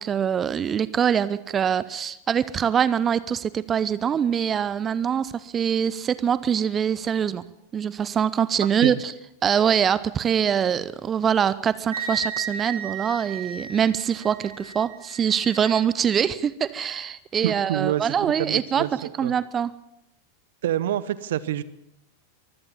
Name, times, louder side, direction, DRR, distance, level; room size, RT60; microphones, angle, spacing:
voice 1, 0.0-7.4 7.7-9.1 9.4-19.7, right 8 dB, 25° right, 17 dB, 0.8 m, -24 dB
voice 2, 8.6-9.0 17.4-18.1 18.4-19.3 20.6-21.6, right 12 dB, 60° right, 18 dB, 0.9 m, -27 dB
Wind instrument woodwind instrument, 11.9-15.8, right 5 dB, 75° right, 5.3 m, -35 dB
23.5 x 16.0 x 7.4 m, 0.79 s
figure-of-eight pair, 90°, 0 cm